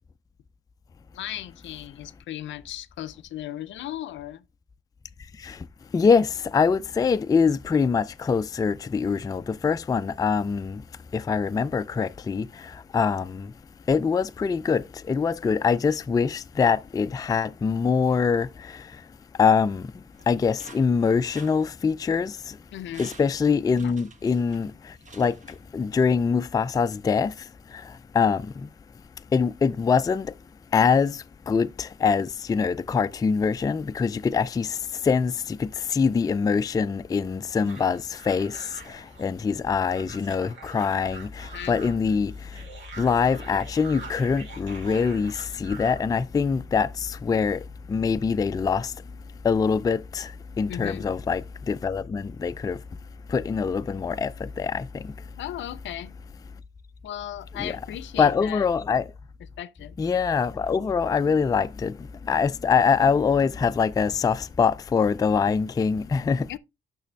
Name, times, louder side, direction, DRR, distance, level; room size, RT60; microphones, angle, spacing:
voice 1, 1.1-4.4 22.7-23.1 23.8-23.9 41.5-41.9 50.7-51.1 55.3-56.1 57.0-58.6 59.6-60.0 66.5-66.6, left 12 dB, 70° left, 0.5 m, -36 dB
voice 2, 5.9-10.8 11.1-13.5 13.9-18.8 19.4-19.9 20.3-22.6 23.0-25.4 25.7-27.3 27.7-28.7 29.3-30.3 30.7-42.3 43.0-47.6 47.9-48.9 49.4-50.3 50.6-52.8 53.3-55.1 57.6-57.7 58.2-59.1 60.0-62.0 62.3-66.5, left 5 dB, 20° left, 0.3 m, -24 dB
sound 1, 20.1-22.2 22.6-22.7 22.9-26.1 26.4-26.5, right 3 dB, 40° right, 1.3 m, -51 dB
sound 2, 37.6-46.0, right 3 dB, 70° right, 3.2 m, -45 dB
6.5 x 6.1 x 3.3 m
cardioid pair, 90°, 20 cm